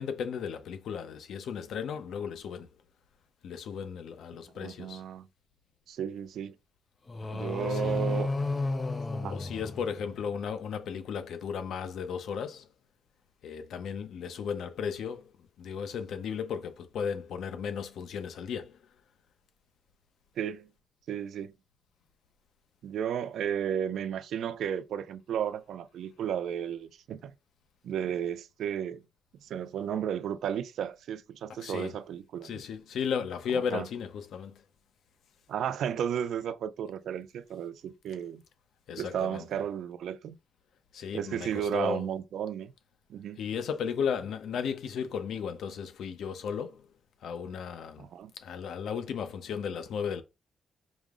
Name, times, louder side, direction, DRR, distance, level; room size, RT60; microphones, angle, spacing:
voice 1, 0.0-2.7 3.4-5.0 7.1-8.2 9.1-12.7 13.4-18.8 31.6-31.9 32.4-34.6 38.9-39.5 40.9-42.1 43.4-46.9 47.2-48.0 48.3-50.2, left 7 dB, 75° left, 0.6 m, -35 dB
voice 2, 4.6-5.3 5.9-6.5 7.3-8.3 9.1-9.4 20.4-20.7 21.1-21.5 22.8-27.3 27.8-29.0 29.4-32.5 33.5-33.9 35.5-38.4 39.0-40.4 41.1-42.7 43.1-43.4 48.0-48.3, right 9 dB, 75° right, 0.4 m, -33 dB
sound 1, 7.1-10.4, left 2 dB, 25° left, 0.4 m, -32 dB
5.0 x 2.0 x 3.6 m
cardioid pair, 155°, 0 cm